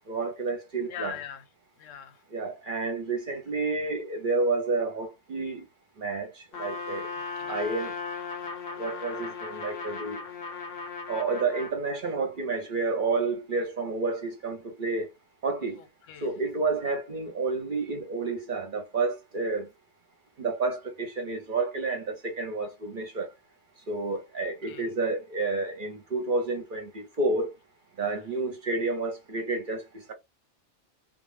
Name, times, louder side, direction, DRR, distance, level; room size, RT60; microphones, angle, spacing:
voice 1, 0.1-1.1 2.3-5.7 6.0-7.1 7.5-7.9 8.8-10.2 11.1-15.1 15.4-15.8 16.2-19.7 20.4-23.3 23.9-27.5 28.0-30.1, right 3 dB, 50° right, 0.8 m, -30 dB
voice 2, 0.9-1.5 1.8-2.2 7.4-7.6 15.8-16.3 24.6-24.9, left 9 dB, 85° left, 1.0 m, -41 dB
Trumpet, 6.5-11.8, left 5 dB, 60° left, 0.7 m, -37 dB
2.4 x 2.1 x 3.2 m
omnidirectional pair, 1.3 m